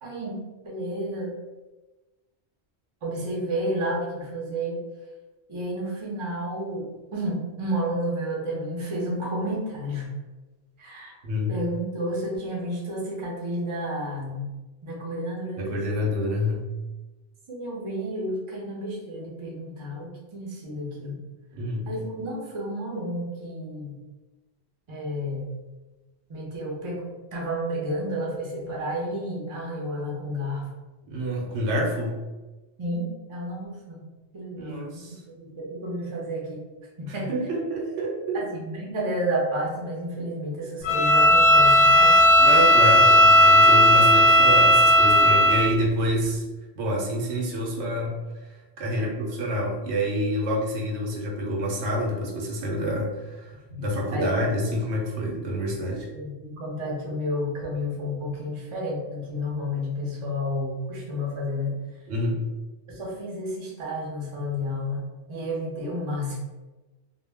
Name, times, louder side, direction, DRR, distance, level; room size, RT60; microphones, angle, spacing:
voice 1, 0.0-1.3 3.0-4.8 5.5-10.1 10.8-11.1 11.5-14.5 14.8-15.8 17.5-21.2 21.8-24.0 24.9-25.5 26.3-30.7 32.8-34.0 34.3-36.6 37.0-37.3 38.3-42.2 48.9-49.1 53.7-53.8 54.1-54.4 56.1-61.8 62.9-65.0 65.3-66.4, equal, 35° right, -3 dB, 0.6 m, -31 dB
voice 2, 11.2-11.6 15.6-16.7 21.5-21.9 31.1-32.2 34.6-35.2 37.1-38.5 42.4-46.4 46.8-48.2 48.8-56.1 62.1-62.4, equal, 85° right, -1 dB, 0.9 m, -27 dB
Bowed string instrument, 40.8-45.7, equal, 65° left, 0.7 m, -15 dB
2.2 x 2.1 x 3.3 m, 1.2 s
omnidirectional pair, 1.1 m